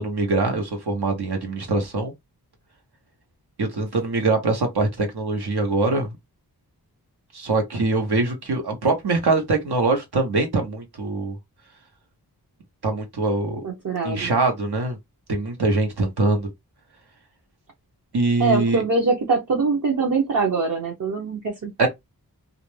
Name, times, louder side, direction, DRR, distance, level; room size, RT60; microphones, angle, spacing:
voice 1, 0.0-2.1 3.6-6.1 7.3-11.4 12.8-13.6 14.0-15.0 15.3-16.5 18.1-18.8 21.8-21.9, right 3 dB, 90° right, 1.0 m, -23 dB
voice 2, 13.6-14.3 18.4-21.9, right 4 dB, 55° right, 0.7 m, -23 dB
2.4 x 2.1 x 3.0 m
wide cardioid pair, 80°, 38 cm